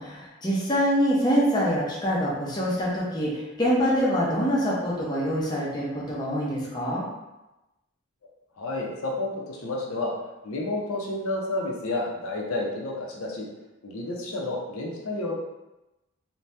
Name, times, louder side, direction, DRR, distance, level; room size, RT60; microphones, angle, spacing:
voice 1, 0.0-7.1, equal, 20° left, -6 dB, 0.5 m, -25 dB
voice 2, 8.6-10.1 10.4-13.5 13.8-15.4, left 2 dB, 85° left, -2 dB, 0.6 m, -30 dB
2.7 x 2.2 x 3.2 m, 1.0 s
head